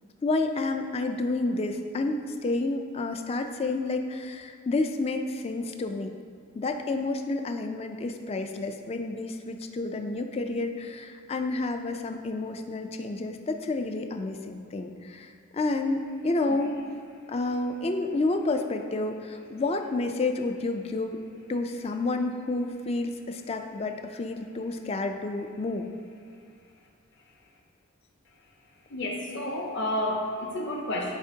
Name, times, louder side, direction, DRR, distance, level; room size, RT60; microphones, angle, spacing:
voice 1, 0.2-6.1 6.5-16.8 17.3-21.2 21.5-25.9, left 2 dB, 30° left, 6 dB, 0.3 m, -30 dB
voice 2, 28.9-31.2, left 1 dB, 55° left, 0 dB, 0.9 m, -30 dB
12.0 x 4.3 x 2.7 m, 2.1 s
head